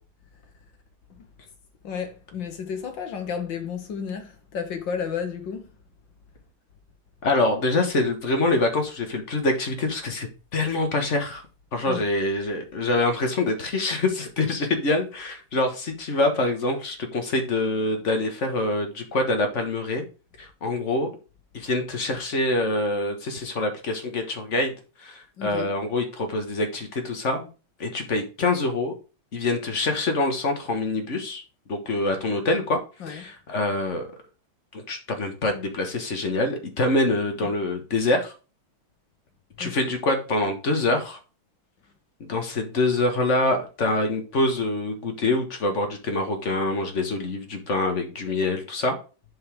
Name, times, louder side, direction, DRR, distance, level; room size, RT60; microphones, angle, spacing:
voice 1, 1.8-5.8 10.6-10.7 11.9-12.1 25.4-25.7 33.0-33.2 37.4-37.5 39.6-40.0, left 7 dB, 70° left, 2.0 m, -33 dB
voice 2, 7.2-11.4 11.7-20.0 20.4-21.1 21.5-24.7 25.0-27.5 27.8-28.9 29.3-31.4 31.7-32.8 33.1-34.1 34.7-38.3 39.6-41.2 42.3-48.9, left 2 dB, 40° left, 1.6 m, -25 dB
7.6 x 5.4 x 3.6 m
omnidirectional pair, 2.1 m